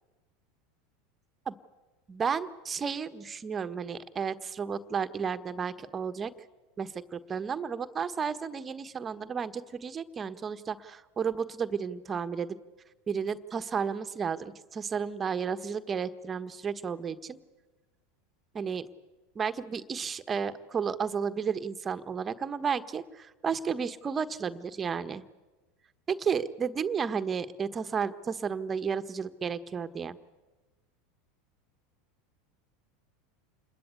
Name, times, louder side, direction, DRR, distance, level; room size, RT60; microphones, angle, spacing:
voice 1, 2.1-6.3 6.8-12.6 13.1-17.4 18.5-18.9 19.3-25.2 26.1-30.2, right 6 dB, 25° right, 10 dB, 1.4 m, -32 dB
28.0 x 21.5 x 8.4 m, 1.2 s
hypercardioid pair, 85°, 0 cm